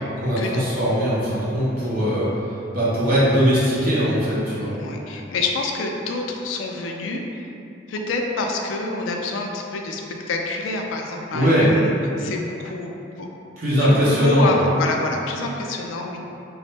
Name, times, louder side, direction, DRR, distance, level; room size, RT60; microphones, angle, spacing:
voice 1, 0.2-2.3 2.7-4.8 11.3-11.7 13.6-14.6, equal, 50° right, -9 dB, 0.6 m, -20 dB
voice 2, 4.7-7.2 7.9-10.0 10.3-13.3 13.8-16.2, left 3 dB, 80° left, 2 dB, 0.3 m, -27 dB
3.0 x 2.0 x 3.2 m, 2.8 s
head